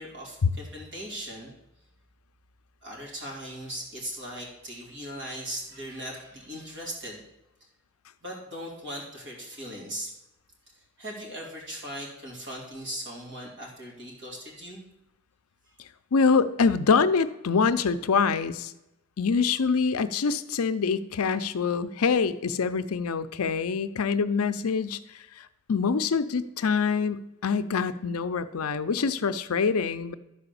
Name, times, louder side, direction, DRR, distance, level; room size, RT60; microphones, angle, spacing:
voice 1, 0.0-1.5 2.8-7.2 8.2-10.1 10.7-14.8, equal, 55° right, -2 dB, 3.3 m, -39 dB
voice 2, 16.1-18.7 19.2-30.1, left 5 dB, 80° left, 11 dB, 0.6 m, -25 dB
11.5 x 4.9 x 6.9 m, 0.92 s
head